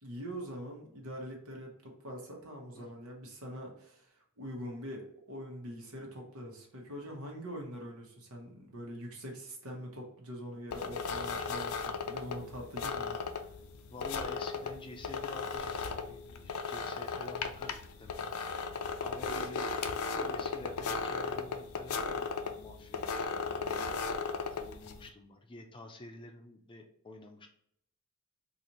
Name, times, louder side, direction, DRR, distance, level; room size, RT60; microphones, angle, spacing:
voice 1, 0.0-13.2, equal, 90° right, 1 dB, 1.1 m, -44 dB
sound 1, 10.7-25.1, left 5 dB, 85° left, 0.4 m, -36 dB
voice 2, 13.9-19.8 20.0-27.5, left 2 dB, 25° left, 4 dB, 0.5 m, -49 dB
4.0 x 2.5 x 3.0 m, 0.71 s
head